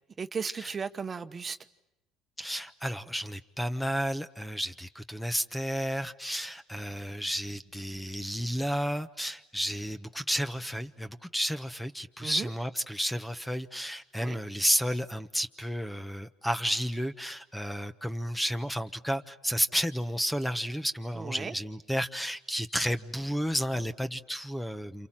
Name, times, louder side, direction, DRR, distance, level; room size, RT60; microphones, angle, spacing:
voice 1, 0.2-1.6 12.2-12.5 14.2-14.4 21.1-21.5, right 5 dB, 35° right, 9 dB, 1.2 m, -36 dB
voice 2, 2.4-25.1, equal, 5° left, 10 dB, 1.1 m, -32 dB
28.5 x 28.0 x 7.5 m, 0.90 s
supercardioid pair, 85°, 0 cm